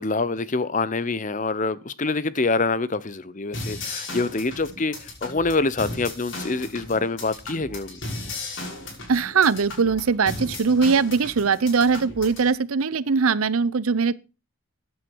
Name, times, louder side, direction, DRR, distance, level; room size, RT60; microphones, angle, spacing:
voice 1, 0.0-4.9 5.2-8.0, left 3 dB, 35° left, 0.7 m, -25 dB
sound 1, 3.5-12.5, left 2 dB, 55° left, 5.9 m, -36 dB
voice 2, 9.1-14.2, right 5 dB, 80° right, 0.7 m, -21 dB
14.5 x 9.6 x 4.6 m
head